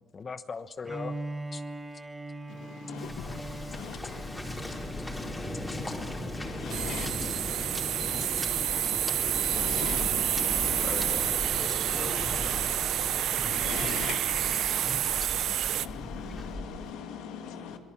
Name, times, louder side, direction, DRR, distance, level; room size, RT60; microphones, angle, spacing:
voice 1, 0.1-1.2 1.5-1.6 7.3-7.5 10.8-11.3 11.6-12.4 13.9-14.0, left 5 dB, 35° left, 1.1 m, -40 dB
Bowed string instrument, 0.8-6.9, right 2 dB, 15° right, 1.4 m, -41 dB
voice 2, 2.5-7.1 9.4-10.0 13.3-16.2, left 10 dB, 70° left, 0.8 m, -44 dB
Waves surf, 3.0-16.9, left 1 dB, 15° left, 4.1 m, -37 dB
voice 3, 3.7-4.0 6.0-7.5 8.0-11.1 13.2-15.0 15.5-17.8, left 7 dB, 90° left, 2.4 m, -43 dB
sound 1, 6.7-15.9, right 11 dB, 70° right, 0.6 m, -29 dB
26.0 x 18.5 x 7.4 m
cardioid pair, 90°, 0 cm